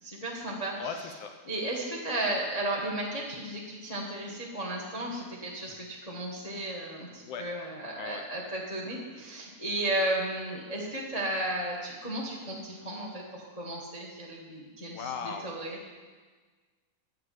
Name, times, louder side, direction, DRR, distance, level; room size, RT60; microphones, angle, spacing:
voice 1, 0.0-0.8 1.4-15.9, right 1 dB, 25° left, -1 dB, 0.8 m, -34 dB
voice 2, 0.8-1.3 7.2-7.5 8.0-8.2 14.9-15.5, left 6 dB, 75° left, 5 dB, 1.4 m, -37 dB
9.7 x 8.2 x 7.6 m, 1.4 s
omnidirectional pair, 3.6 m